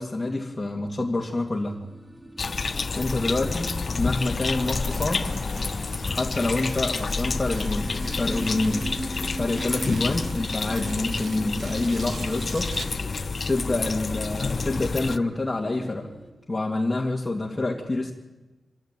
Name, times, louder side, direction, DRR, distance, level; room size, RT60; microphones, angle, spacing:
voice 1, 0.0-1.8 2.9-5.3 6.1-8.9 9.4-12.7 13.5-16.1 16.5-18.1, left 2 dB, 25° left, -2 dB, 2.6 m, -27 dB
sound 1, 1.1-16.3, right 1 dB, 15° right, 3.2 m, -41 dB
sound 2, 2.4-15.2, left 4 dB, 50° left, 0.8 m, -29 dB
Tearing, 4.7-13.0, right 4 dB, 70° right, 2.2 m, -44 dB
26.5 x 13.5 x 9.2 m, 1.1 s
cardioid pair, 75°, 0 cm